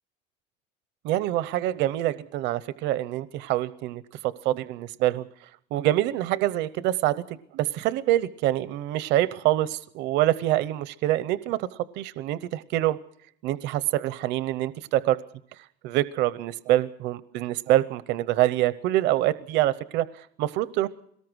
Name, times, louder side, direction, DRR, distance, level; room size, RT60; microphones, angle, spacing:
voice 1, 1.0-5.2 5.7-11.7 11.9-13.0 13.4-15.2 15.8-20.9, right 14 dB, 75° right, 15 dB, 0.8 m, -25 dB
22.5 x 19.0 x 6.3 m, 0.67 s
cardioid pair, 175°, 18 cm